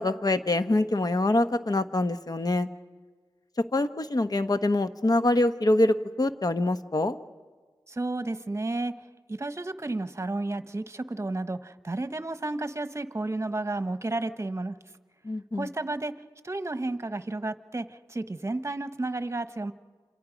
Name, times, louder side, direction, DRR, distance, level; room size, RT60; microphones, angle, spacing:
voice 1, 0.0-2.7 3.7-7.2 15.2-15.7, left 2 dB, 50° left, 10 dB, 1.1 m, -25 dB
voice 2, 7.9-8.9 9.3-14.8 15.5-16.1 16.4-19.7, right 2 dB, 35° right, 11 dB, 1.1 m, -32 dB
27.5 x 27.0 x 5.2 m, 1.4 s
cardioid pair, 45°, 9 cm